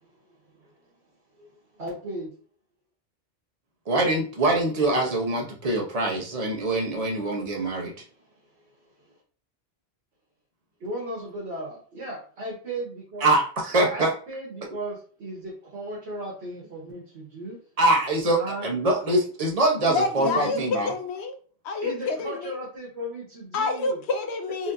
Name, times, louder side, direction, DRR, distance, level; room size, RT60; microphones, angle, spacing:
voice 1, 1.8-2.3 7.9-8.3 8.5-8.6 9.1-9.2 10.8-13.3 13.9-17.6 18.4-18.7 20.2-20.6 21.8-24.0 24.6-24.7, right 1 dB, 80° right, 1.4 m, -36 dB
voice 2, 3.9-7.9 13.2-14.1 17.8-20.9, right 2 dB, 40° right, 0.9 m, -24 dB
voice 3, 19.9-21.3 21.6-22.6 23.5-24.7, left 3 dB, 80° left, 0.9 m, -28 dB
4.3 x 2.8 x 2.6 m
omnidirectional pair, 1.1 m